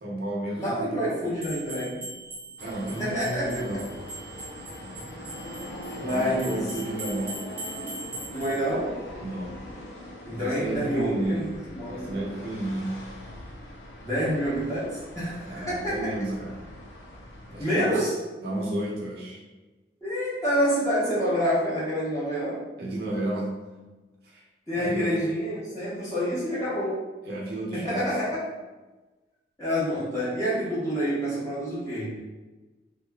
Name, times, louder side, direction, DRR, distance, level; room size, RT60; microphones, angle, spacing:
voice 1, 0.0-1.1 2.6-3.8 6.1-7.4 8.0-8.2 9.2-9.6 10.3-11.6 11.9-13.1 15.4-16.6 17.5-18.1 18.4-19.4 22.8-23.5 24.2-24.4 24.7-25.2 27.3-28.2, right 1 dB, 55° right, -4 dB, 0.6 m, -32 dB
voice 2, 0.6-2.0 2.9-3.6 5.9-6.6 8.3-9.0 10.2-11.5 11.7-12.2 14.0-16.1 17.6-18.1 20.0-22.6 24.7-27.0 27.7-28.4 29.6-32.2, equal, 20° left, -11 dB, 1.0 m, -27 dB
sound 1, 1.4-8.6, right 2 dB, 10° right, 0.6 m, -41 dB
sound 2, 2.6-17.6, left 1 dB, 80° left, 0.5 m, -41 dB
2.8 x 2.4 x 2.2 m, 1.2 s
head